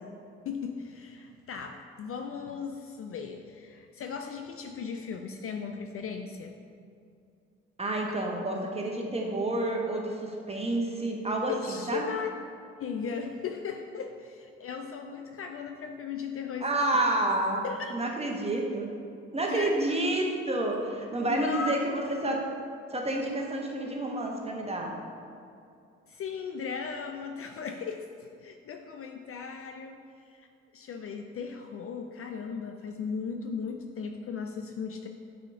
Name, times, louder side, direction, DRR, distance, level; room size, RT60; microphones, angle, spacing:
voice 1, 0.5-6.6 11.5-12.3 12.8-17.0 17.6-17.9 19.5-19.9 21.3-21.8 26.1-30.5 30.7-35.1, left 5 dB, 40° left, 5 dB, 0.5 m, -37 dB
voice 2, 7.8-12.0 16.6-17.6 17.9-18.9 19.3-22.4 22.9-24.9, right 1 dB, 15° right, -1 dB, 1.3 m, -29 dB
10.5 x 4.2 x 2.8 m, 2.5 s
figure-of-eight pair, 40°, 35 cm